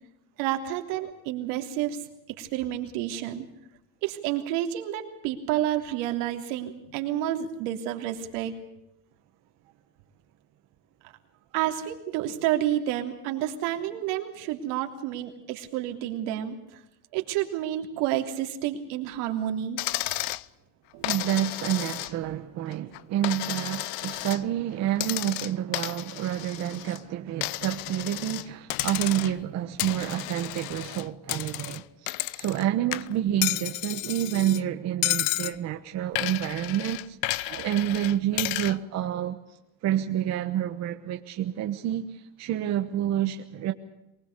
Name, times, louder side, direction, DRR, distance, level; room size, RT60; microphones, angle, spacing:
voice 1, 0.4-2.0 2.4-3.4 4.0-8.5 11.5-16.8 17.1-19.8 20.9-21.1, right 12 dB, 70° right, 3.3 m, -30 dB
Coin (dropping), 19.8-20.5 21.0-22.4 22.7-24.4 25.0-27.0 27.4-28.5 28.7-29.4 29.8-32.7 32.9-34.6 35.0-35.6 36.2-38.8, left 20 dB, 65° left, 0.7 m, -32 dB
voice 2, 21.0-43.7, right 11 dB, 40° right, 1.1 m, -29 dB
23.5 x 20.0 x 6.7 m
cardioid pair, 160°, 43 cm